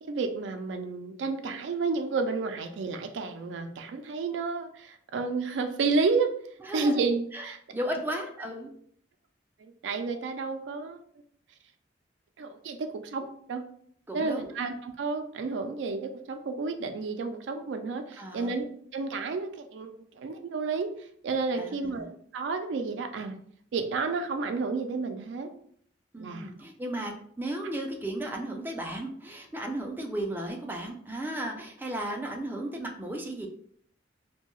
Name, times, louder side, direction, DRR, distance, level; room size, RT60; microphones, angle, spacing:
voice 1, 0.0-6.3 6.7-7.6 9.6-11.0 12.4-13.6 14.1-18.6 18.9-20.9 21.2-22.1 22.3-23.4 23.7-25.5 26.2-26.5, right 4 dB, 85° right, 7 dB, 0.4 m, -31 dB
voice 2, 6.6-7.0 7.3-8.7 14.1-14.5 18.2-18.6 21.6-22.1 26.1-27.1 27.4-33.5, right 1 dB, 10° right, 1 dB, 0.4 m, -35 dB
2.7 x 2.2 x 3.0 m, 0.62 s
head